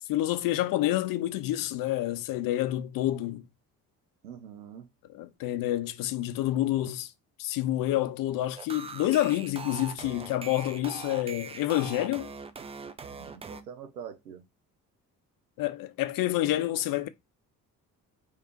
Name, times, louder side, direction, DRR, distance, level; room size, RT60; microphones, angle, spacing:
voice 1, 0.1-3.4 5.1-7.1 7.4-12.3 15.6-17.1, left 14 dB, 50° left, 0.5 m, -28 dB
voice 2, 4.2-4.9 13.1-14.4, right 8 dB, 85° right, 0.7 m, -44 dB
sound 1, 8.6-13.6, right 4 dB, 15° right, 0.4 m, -41 dB
3.2 x 3.2 x 2.9 m
figure-of-eight pair, 45°, 47 cm